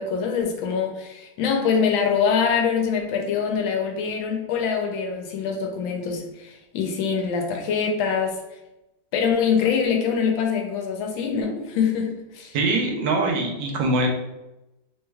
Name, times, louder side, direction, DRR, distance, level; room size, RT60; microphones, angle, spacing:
voice 1, 0.0-8.4 9.1-12.5, left 6 dB, 80° left, 2 dB, 1.3 m, -24 dB
voice 2, 12.5-14.1, right 2 dB, 75° right, 1 dB, 1.3 m, -23 dB
3.2 x 3.1 x 2.2 m, 0.96 s
omnidirectional pair, 2.2 m